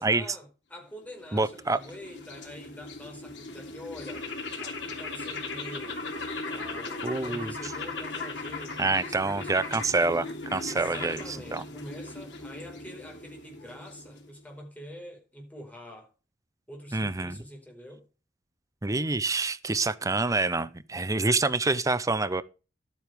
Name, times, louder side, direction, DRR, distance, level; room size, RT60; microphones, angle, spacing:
voice 1, 0.0-4.3 4.6-6.0 6.4-9.5 10.7-16.1 16.7-18.1, left 1 dB, 10° left, 4.8 m, -45 dB
sound 1, 1.0-14.4, left 3 dB, 70° left, 3.1 m, -38 dB
voice 2, 1.3-1.8 7.0-7.5 8.8-11.6 16.9-17.4 18.8-22.4, right 3 dB, 20° right, 0.6 m, -27 dB
12.5 x 9.2 x 3.5 m
head